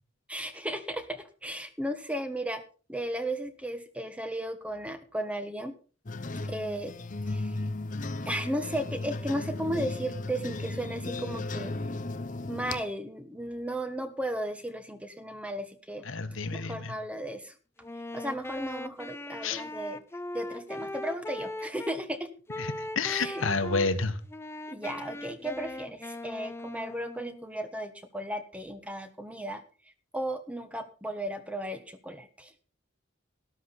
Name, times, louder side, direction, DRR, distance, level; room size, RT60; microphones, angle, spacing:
voice 1, 0.3-2.6 2.9-5.8 6.4-6.9 7.3-7.6 8.2-11.7 12.5-16.0 16.5-17.5 18.1-20.0 20.3-22.3 23.0-23.5 24.7-29.6 30.1-32.5, right 1 dB, 5° right, 9 dB, 1.2 m, -35 dB
sound 1, 6.1-12.8, left 2 dB, 40° left, 0.9 m, -35 dB
voice 2, 16.0-17.0 19.4-19.6 22.6-24.2, left 4 dB, 80° left, 9 dB, 1.4 m, -30 dB
Wind instrument woodwind instrument, 17.8-22.0 22.5-23.9 24.3-27.5, left 1 dB, 10° left, 0.5 m, -39 dB
13.0 x 12.5 x 4.2 m, 0.38 s
head